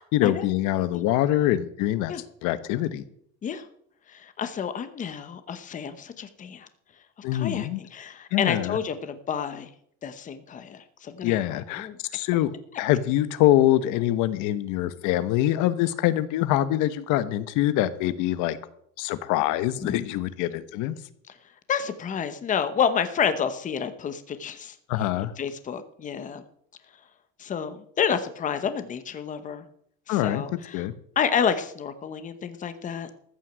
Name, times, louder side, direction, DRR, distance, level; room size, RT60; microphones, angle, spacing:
voice 1, 0.1-2.1 2.4-3.0 7.2-7.8 8.3-8.8 11.2-12.5 12.8-18.6 19.0-21.0 24.9-25.3 30.1-30.4 30.7-30.9, left 13 dB, 90° left, 14 dB, 1.0 m, -24 dB
voice 2, 4.1-6.7 7.3-9.7 10.0-12.2 19.8-20.0 21.7-24.8 25.4-26.4 27.4-29.6 30.1-30.8 31.2-33.1, left 7 dB, 25° left, 10 dB, 0.9 m, -29 dB
14.5 x 6.2 x 8.1 m, 0.68 s
cardioid pair, 170°, 30 cm